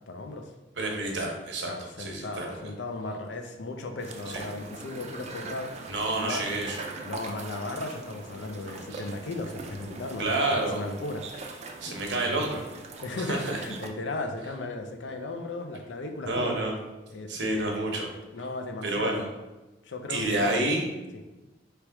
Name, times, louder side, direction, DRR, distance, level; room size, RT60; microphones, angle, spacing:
voice 1, 0.1-0.5 1.7-6.4 7.0-11.2 12.1-12.4 13.0-16.6 17.1-17.9 18.3-19.3 19.8-20.7, left 2 dB, 75° left, 5 dB, 0.5 m, -36 dB
voice 2, 0.8-1.7 2.0-2.6 4.3-4.4 5.9-6.9 8.9-9.0 10.2-10.8 11.8-12.6 13.3-13.6 16.2-16.7 17.3-18.1 18.8-19.2 20.1-20.9, right 2 dB, 70° right, 0 dB, 1.0 m, -29 dB
sound 1, 4.0-13.9, right 3 dB, 40° right, 0.5 m, -42 dB
3.4 x 3.0 x 4.6 m, 1.1 s
head